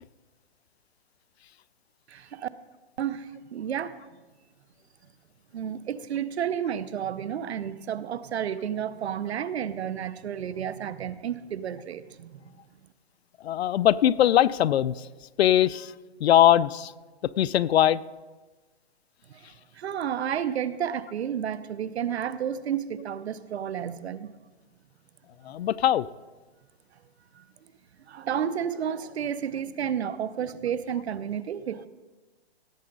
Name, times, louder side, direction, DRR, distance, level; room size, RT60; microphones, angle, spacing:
voice 1, 2.1-2.5 3.0-3.9 5.5-12.4 19.3-19.4 19.8-24.3 27.4-27.5 28.1-31.9, right 9 dB, 80° right, 15 dB, 0.8 m, -31 dB
voice 2, 13.4-14.9 15.4-15.9 16.2-16.9 17.4-18.0 25.5-26.1, left 11 dB, 75° left, 20 dB, 0.5 m, -21 dB
17.5 x 7.6 x 3.9 m, 1.2 s
hypercardioid pair, 160°, 32 cm